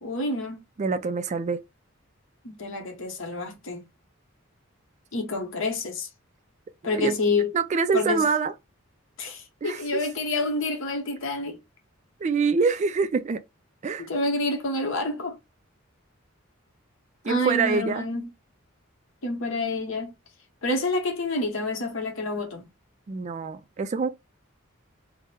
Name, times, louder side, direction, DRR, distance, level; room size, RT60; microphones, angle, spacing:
voice 1, 0.0-0.6 2.4-3.8 5.1-6.1 6.8-7.5 7.9-8.2 9.2-11.6 14.0-15.4 17.2-18.3 19.2-20.1 20.6-22.6, left 2 dB, 70° left, 1.0 m, -28 dB
voice 2, 0.8-1.6 6.8-7.1 7.5-8.5 9.6-10.0 12.2-13.4 13.8-14.1 17.2-18.0 23.1-24.1, right 5 dB, 35° right, 0.3 m, -25 dB
3.6 x 2.0 x 4.2 m
head